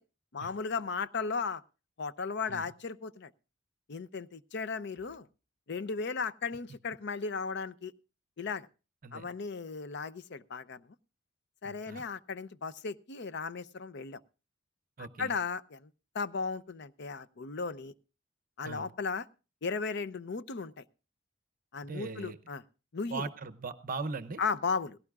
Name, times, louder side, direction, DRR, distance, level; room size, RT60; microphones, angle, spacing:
voice 1, 0.3-1.6 2.0-3.3 3.9-5.3 5.7-7.9 8.4-8.7 9.1-10.8 11.6-14.2 15.2-17.9 18.6-19.2 19.6-20.7 21.7-22.6 22.9-23.3 24.4-25.0, left 5 dB, 60° left, 14 dB, 0.6 m, -35 dB
voice 2, 11.6-12.1 15.0-15.3 18.6-18.9 21.8-22.4 23.1-24.4, right 4 dB, 45° right, 13 dB, 0.8 m, -39 dB
18.0 x 16.5 x 2.4 m, 0.32 s
head